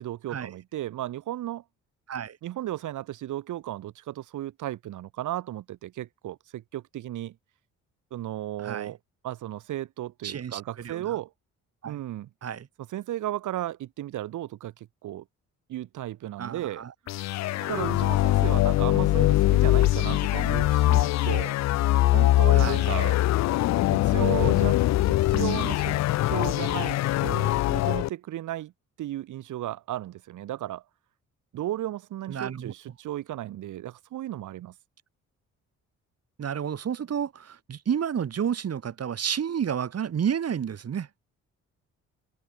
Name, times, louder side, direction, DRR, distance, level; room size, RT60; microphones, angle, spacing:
voice 1, 0.0-1.6 2.4-7.3 8.1-9.0 9.2-11.3 11.8-12.3 12.9-15.2 15.7-16.8 17.7-21.5 22.1-23.2 23.9-26.0 26.2-28.7 29.0-30.8 31.5-34.7, right 13 dB, 80° right, 2.9 m, -34 dB
voice 2, 8.6-8.9 10.2-11.2 11.8-12.0 12.4-12.7 16.4-16.9 17.6-18.1 22.5-22.9 32.3-32.7 36.4-41.1, right 8 dB, 55° right, 6.6 m, -31 dB
sound 1, 17.1-28.1, left 16 dB, 60° left, 0.4 m, -22 dB
open air
cardioid pair, 90°, 30 cm